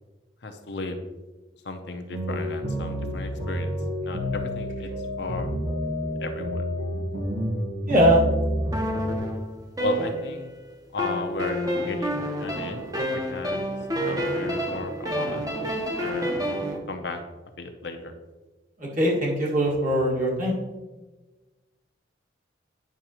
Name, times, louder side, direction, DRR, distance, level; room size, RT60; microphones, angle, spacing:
voice 1, 0.4-1.0 1.6-3.7 4.0-4.9 5.2-5.5 6.2-6.6 9.8-10.5 10.9-11.6 11.9-12.8 13.1-13.7 14.0-15.5 16.0-16.4 16.9-17.2 17.6-18.1, left 2 dB, 65° left, 5 dB, 0.7 m, -34 dB
sound 1, 2.1-9.2, equal, 80° right, 1.4 m, -29 dB
voice 2, 7.9-8.2 18.8-20.5, equal, 45° right, -3 dB, 1.9 m, -21 dB
sound 2, 8.7-10.6 11.0-16.8, equal, 20° right, 0.8 m, -29 dB
9.2 x 5.8 x 2.9 m, 1.2 s
head